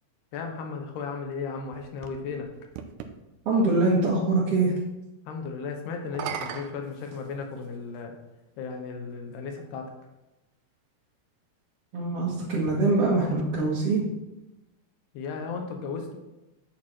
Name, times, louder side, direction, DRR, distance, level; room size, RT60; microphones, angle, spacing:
voice 1, 0.3-2.5 5.3-8.1 8.6-9.9 15.1-16.2, left 5 dB, 85° left, 3 dB, 3.2 m, -35 dB
sound 1, 1.3-3.2 6.0-7.8 8.7-8.8 12.5-14.1, right 8 dB, 85° right, 2.7 m, -40 dB
voice 2, 3.5-4.7 11.9-14.0, right 2 dB, 50° right, -6 dB, 2.1 m, -23 dB
11.0 x 7.8 x 4.5 m, 0.98 s
omnidirectional pair, 4.5 m